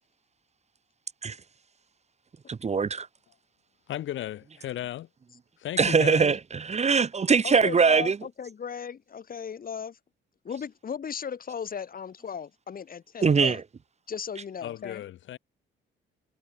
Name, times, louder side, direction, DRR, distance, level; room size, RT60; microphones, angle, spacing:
voice 1, 2.5-3.1 5.8-8.2 13.2-13.6, right 5 dB, 35° right, 1.5 m, -22 dB
voice 2, 3.9-5.1 5.6-6.3 14.6-15.4, left 12 dB, 75° left, 1.6 m, -35 dB
voice 3, 7.4-10.0 10.4-13.6 14.1-15.0, left 7 dB, 45° left, 3.1 m, -36 dB
cardioid pair, 90°, 20 cm